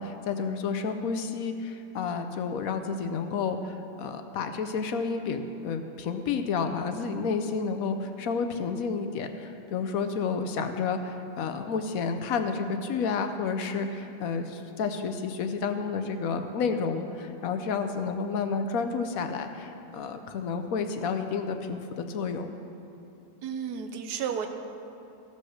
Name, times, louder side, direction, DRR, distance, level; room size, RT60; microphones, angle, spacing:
voice 1, 0.0-22.5, left 5 dB, 70° left, 7 dB, 1.0 m, -30 dB
voice 2, 23.4-24.5, right 7 dB, 90° right, 6 dB, 1.3 m, -32 dB
15.0 x 5.4 x 6.4 m, 2.8 s
omnidirectional pair, 1.7 m